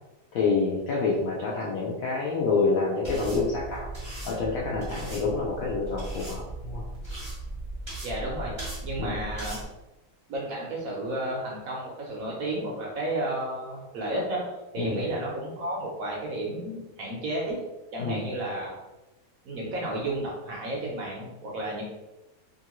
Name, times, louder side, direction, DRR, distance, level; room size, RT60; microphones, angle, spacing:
voice 1, 0.3-3.9 4.2-6.8 9.0-9.2 14.8-15.0 18.0-18.2, left 4 dB, 75° left, -4 dB, 0.8 m, -27 dB
sound 1, 3.0-9.6, right 2 dB, 30° right, 0.5 m, -37 dB
voice 2, 8.0-8.5 8.8-9.6 10.3-14.4 14.7-17.6 17.9-18.7 19.4-21.8, right 1 dB, 70° right, -3 dB, 0.8 m, -32 dB
2.9 x 2.5 x 2.9 m, 1.0 s
omnidirectional pair, 1.9 m